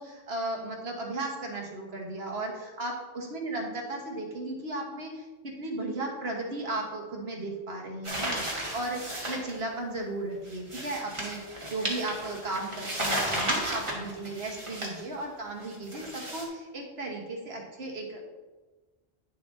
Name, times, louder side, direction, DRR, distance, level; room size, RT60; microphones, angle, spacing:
voice 1, 0.0-18.2, right 2 dB, 75° right, 0 dB, 1.6 m, -35 dB
sound 1, 8.0-9.5 10.5-15.0 15.6-16.4, right 1 dB, 30° right, 1.5 m, -33 dB
10.5 x 6.9 x 2.7 m, 1.2 s
omnidirectional pair, 1.1 m